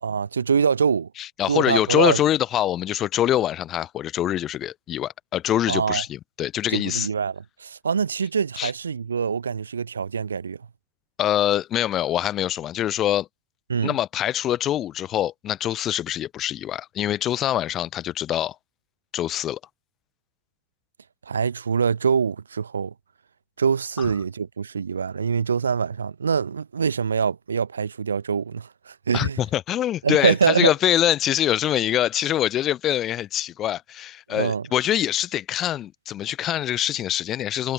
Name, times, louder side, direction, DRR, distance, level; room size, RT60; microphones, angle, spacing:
voice 1, 0.0-1.1 1.5-2.2 5.7-6.0 6.7-10.6 13.7-13.9 21.3-22.9 23.6-29.4 30.0-30.7 34.3-34.6, right 6 dB, 70° right, 1.0 m, -24 dB
voice 2, 1.2-7.1 8.6-8.7 11.2-13.3 13.8-18.6 19.1-19.6 24.0-24.1 29.1-37.7, left 12 dB, 30° left, 0.7 m, -24 dB
figure-of-eight pair, 90°, 0 cm